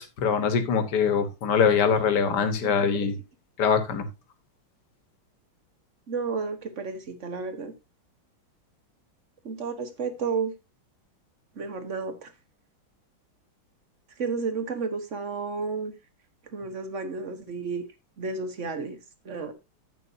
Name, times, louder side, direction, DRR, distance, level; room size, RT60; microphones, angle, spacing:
voice 1, 0.0-3.1 3.6-4.1, left 6 dB, 55° left, 1.8 m, -23 dB
voice 2, 6.1-7.7 9.4-10.5 11.6-12.3 14.2-15.9 16.5-17.8 18.2-19.0 19.2-19.5, right 4 dB, 40° right, 1.4 m, -32 dB
11.0 x 8.4 x 2.7 m
omnidirectional pair, 2.3 m